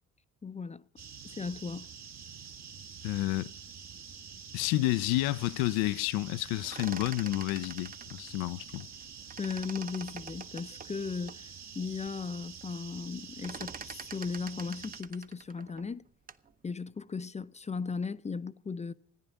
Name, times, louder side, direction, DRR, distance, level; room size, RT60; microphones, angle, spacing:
voice 1, 0.4-0.8 1.2-1.9 9.4-16.0 16.6-18.9, left 5 dB, 20° left, 0.5 m, -37 dB
sound 1, 1.0-15.0, right 6 dB, 50° right, 1.3 m, -47 dB
voice 2, 3.0-3.5 4.5-8.9, left 17 dB, 85° left, 0.5 m, -30 dB
sound 2, 6.5-9.0 9.3-11.4 11.9-12.0 12.3-12.7 13.0-16.5, right 5 dB, 25° right, 0.7 m, -46 dB
14.5 x 9.8 x 7.1 m
supercardioid pair, 70°, 35 cm